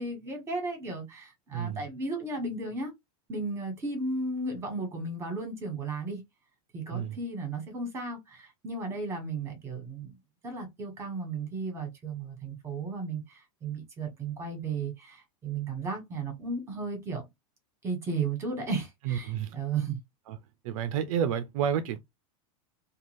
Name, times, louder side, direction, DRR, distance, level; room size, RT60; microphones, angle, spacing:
voice 1, 0.0-2.9 3.3-6.2 6.7-10.2 10.4-17.3 17.8-20.0, right 3 dB, 15° right, 1.3 m, -34 dB
voice 2, 1.5-1.8 6.9-7.2 19.1-19.6 20.3-20.4 20.6-22.0, right 9 dB, 65° right, 0.4 m, -30 dB
2.5 x 2.3 x 3.1 m
supercardioid pair, 150°, 19 cm